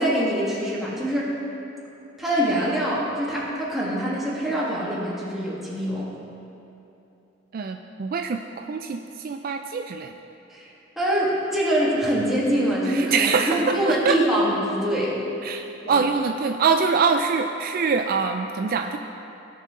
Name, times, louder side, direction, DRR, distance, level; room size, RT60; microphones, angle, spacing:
voice 1, 0.0-1.3 2.2-6.1 10.5-15.2 15.8-16.0, right 1 dB, ahead, -7 dB, 1.8 m, -24 dB
voice 2, 7.5-10.1 12.9-14.2 15.4-19.0, right 5 dB, 45° right, 5 dB, 0.3 m, -24 dB
16.5 x 5.6 x 3.7 m, 2.9 s
head